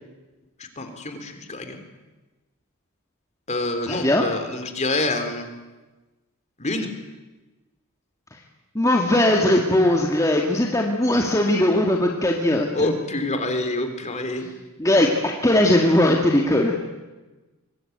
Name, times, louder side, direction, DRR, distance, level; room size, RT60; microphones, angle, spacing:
voice 1, 0.6-1.8 3.5-5.5 6.6-6.9 12.7-14.5, left 2 dB, 30° left, 7 dB, 3.5 m, -27 dB
voice 2, 3.9-4.3 8.8-12.9 14.8-16.8, left 1 dB, 15° left, 0 dB, 2.0 m, -19 dB
25.0 x 21.5 x 9.3 m, 1.2 s
head